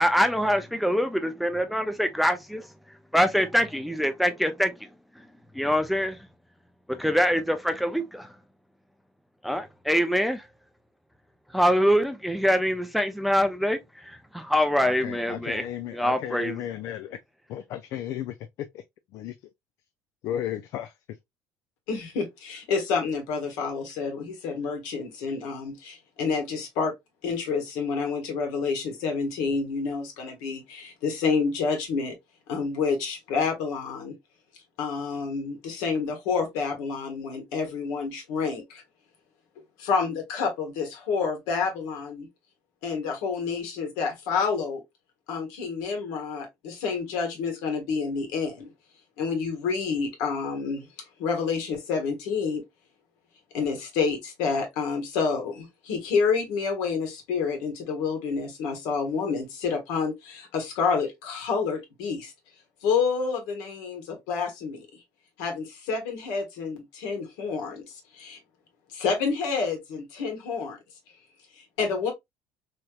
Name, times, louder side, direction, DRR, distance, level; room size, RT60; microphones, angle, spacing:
voice 1, 0.0-2.7 3.1-4.7 5.5-6.2 6.9-8.3 9.4-10.4 11.5-15.6 15.9-16.5, equal, ahead, 0.5 m, -24 dB
voice 2, 14.7-17.2 17.5-18.8 19.1-19.4 20.2-21.2, left 11 dB, 65° left, 0.3 m, -34 dB
voice 3, 21.9-26.9 27.2-32.1 32.5-34.2 34.8-38.8 39.8-42.3 42.8-44.8 45.3-48.7 49.2-50.9 51.2-52.6 53.5-62.3 62.8-65.0 65.4-68.4 68.9-70.8 71.6-72.1, left 5 dB, 85° left, 1.3 m, -28 dB
3.1 x 2.9 x 2.3 m
cardioid pair, 110°, 6 cm